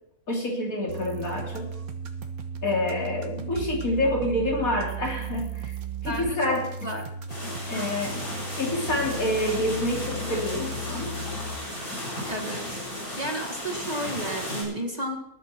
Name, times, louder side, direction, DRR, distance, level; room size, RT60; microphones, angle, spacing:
voice 1, 0.3-1.7 2.6-5.8 6.0-6.7 7.7-8.2 8.6-11.1, left 1 dB, 70° left, -1 dB, 3.7 m, -27 dB
sound 1, 0.9-11.6, right 4 dB, 85° right, 1.8 m, -36 dB
voice 2, 6.1-7.0 7.7-7.9 12.3-12.9 13.2-15.2, right 1 dB, 30° right, 3 dB, 1.8 m, -32 dB
sound 2, 7.3-14.6, left 1 dB, 90° left, 6.9 m, -34 dB
19.5 x 11.5 x 4.5 m, 0.78 s
omnidirectional pair, 1.5 m